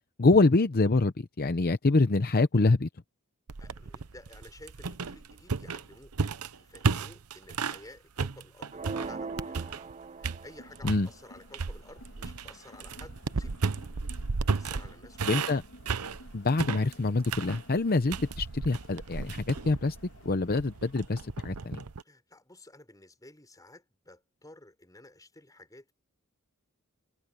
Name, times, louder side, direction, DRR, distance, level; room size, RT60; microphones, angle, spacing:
voice 1, 0.2-2.9 10.8-11.1 15.2-15.6 16.3-20.0 20.2-21.8, left 3 dB, 45° left, 0.7 m, -25 dB
sound 1, 3.5-7.9 8.2-9.9 10.2-11.1 11.5-22.0, right 4 dB, 90° right, 0.9 m, -34 dB
voice 2, 3.6-6.3 6.5-9.6 10.2-13.7 14.4-15.3 22.0-25.9, left 2 dB, 15° left, 5.9 m, -53 dB
sound 2, 8.7-10.8, right 4 dB, 30° right, 0.5 m, -39 dB
Crowd, 10.3-21.8, left 1 dB, 60° left, 2.7 m, -55 dB
head